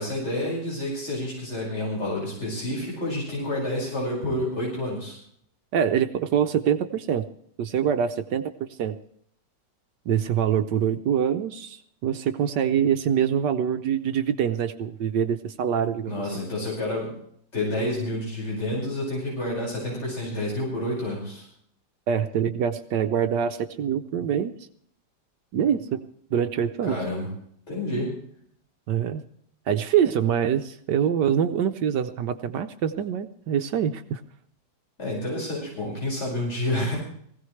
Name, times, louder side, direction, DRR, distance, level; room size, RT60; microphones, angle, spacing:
voice 1, 0.0-5.2 16.1-17.2 17.5-21.5 26.8-27.3 27.7-28.1 35.0-37.0, left 1 dB, 35° left, -5 dB, 5.7 m, -29 dB
voice 2, 5.7-7.3 7.6-9.0 10.1-16.2 22.1-24.5 25.5-26.0 26.3-27.0 28.9-29.2 29.7-34.2, right 8 dB, 70° right, 9 dB, 1.3 m, -25 dB
20.0 x 16.0 x 3.2 m, 0.67 s
omnidirectional pair, 2.0 m